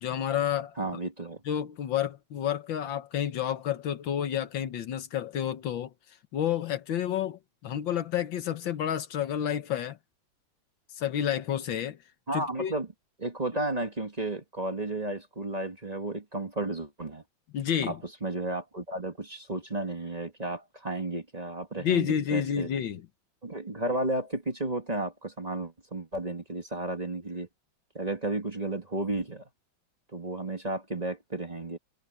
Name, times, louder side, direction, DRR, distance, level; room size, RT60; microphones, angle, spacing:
voice 1, 0.0-0.7 1.5-5.9 6.3-10.0 11.0-12.0 12.3-12.7 17.5-18.0 21.8-23.1, left 9 dB, 75° left, 1.8 m, -30 dB
voice 2, 0.8-1.4 12.3-12.9 13.2-17.2 17.8-22.7 23.4-27.5 27.9-29.4 30.1-31.8, right 2 dB, 20° right, 2.0 m, -33 dB
omnidirectional pair, 2.1 m